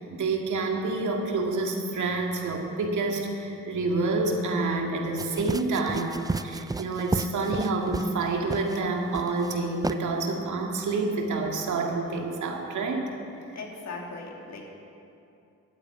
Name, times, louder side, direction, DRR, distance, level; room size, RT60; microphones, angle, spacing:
voice 1, 0.0-13.1, right 3 dB, 70° right, 1 dB, 2.2 m, -28 dB
sound 1, 5.2-8.2 8.5-8.8 9.1-9.5 9.8-10.0, right 3 dB, 10° right, 0.4 m, -32 dB
voice 2, 13.5-14.6, left 3 dB, 60° left, -1 dB, 3.0 m, -38 dB
13.0 x 9.0 x 9.1 m, 2.7 s
supercardioid pair, 60°, 31 cm